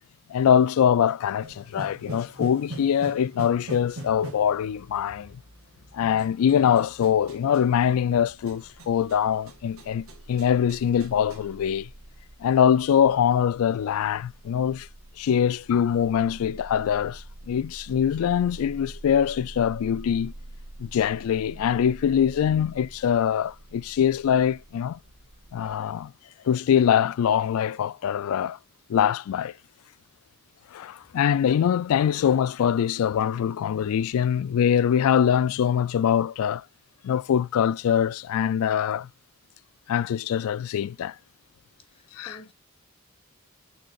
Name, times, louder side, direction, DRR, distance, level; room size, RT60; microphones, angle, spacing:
voice 1, 0.3-5.4 5.9-11.9 12.4-14.9 15.2-20.3 20.8-25.0 25.5-26.1 26.4-28.6 28.9-29.5 30.7-36.6 37.0-39.1 39.9-41.2 42.1-42.4, left 8 dB, 75° left, 0.3 m, -23 dB
sound 1, 1.4-11.5, right 1 dB, 70° right, 2.1 m, -43 dB
sound 2, 7.7-25.8, right 1 dB, 55° right, 2.5 m, -46 dB
voice 2, 41.9-42.5, equal, 25° left, 1.2 m, -49 dB
6.4 x 6.4 x 2.4 m
head